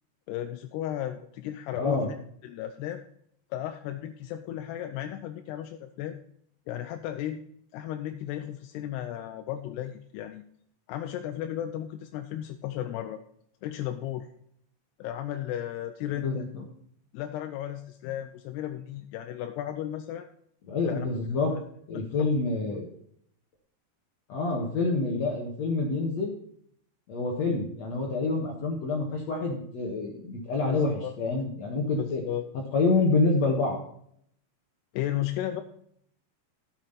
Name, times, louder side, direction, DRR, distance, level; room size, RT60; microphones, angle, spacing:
voice 1, 0.3-2.0 2.4-3.0 3.5-6.2 6.7-7.4 7.7-10.4 10.9-13.2 13.6-14.3 15.0-16.5 17.1-20.3 20.8-21.1 21.9-22.0 30.7-31.2 32.0-32.4 34.9-35.6, left 12 dB, 85° left, 6 dB, 2.7 m, -34 dB
voice 2, 1.7-2.1 16.1-16.6 20.7-21.5 21.9-22.9 24.3-26.3 27.1-32.2 32.7-33.8, left 3 dB, 55° left, 0 dB, 2.2 m, -27 dB
12.5 x 7.9 x 4.1 m, 0.66 s
omnidirectional pair, 4.7 m